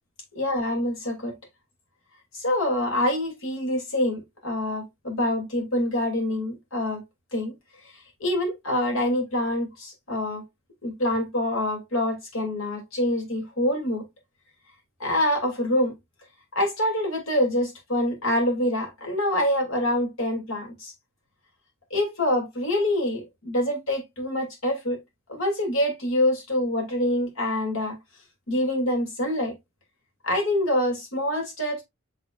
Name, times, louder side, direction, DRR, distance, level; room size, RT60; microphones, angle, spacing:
voice 1, 0.3-1.3 2.3-7.0 7.3-7.5 8.2-10.4 10.8-14.0 15.0-15.9 16.5-20.9 21.9-25.0 25.3-28.0 28.5-29.5 30.2-31.8, left 1 dB, 75° left, 2.9 m, -26 dB
9.8 x 3.9 x 2.5 m
head